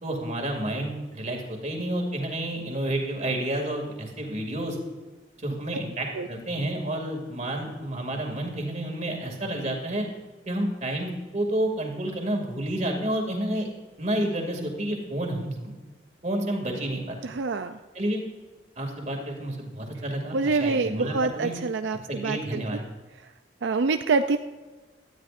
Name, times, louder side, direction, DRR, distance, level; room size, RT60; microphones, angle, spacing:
voice 1, 0.0-4.8 5.4-10.1 10.5-13.7 14.0-15.8 16.2-17.2 17.9-18.2 18.8-21.5 22.1-22.8, right 1 dB, 40° right, 2 dB, 2.4 m, -30 dB
voice 2, 17.2-17.8 20.3-22.6 23.6-24.4, right 4 dB, 85° right, 8 dB, 0.5 m, -26 dB
17.5 x 12.5 x 2.6 m, 1.3 s
head